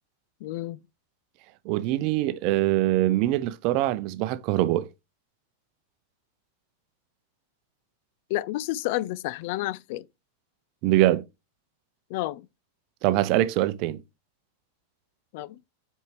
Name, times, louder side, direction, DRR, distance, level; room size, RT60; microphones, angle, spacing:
voice 1, 0.4-0.8 8.3-10.1 12.1-12.5 15.3-15.7, left 16 dB, 50° left, 0.4 m, -30 dB
voice 2, 1.6-4.9 10.8-11.2 13.0-14.0, right 15 dB, 45° right, 0.6 m, -23 dB
7.9 x 5.3 x 3.3 m
figure-of-eight pair, 90°, 0 cm